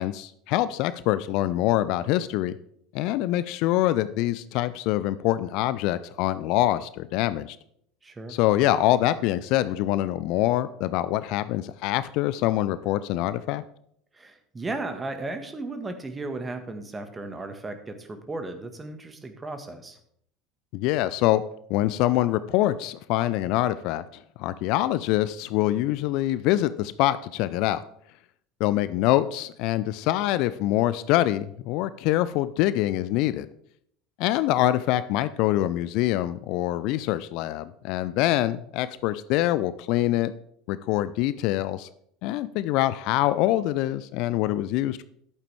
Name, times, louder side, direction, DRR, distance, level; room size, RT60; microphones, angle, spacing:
voice 1, 0.0-2.6 2.9-7.6 8.3-13.6 20.7-21.4 21.7-24.0 24.4-27.8 28.6-33.5 34.2-40.3 40.7-41.9 42.2-45.0, left 14 dB, 55° left, 15 dB, 0.4 m, -25 dB
voice 2, 8.0-8.4 14.1-20.0, right 2 dB, 20° right, 7 dB, 1.6 m, -35 dB
11.0 x 8.6 x 3.5 m, 0.68 s
figure-of-eight pair, 70°, 0 cm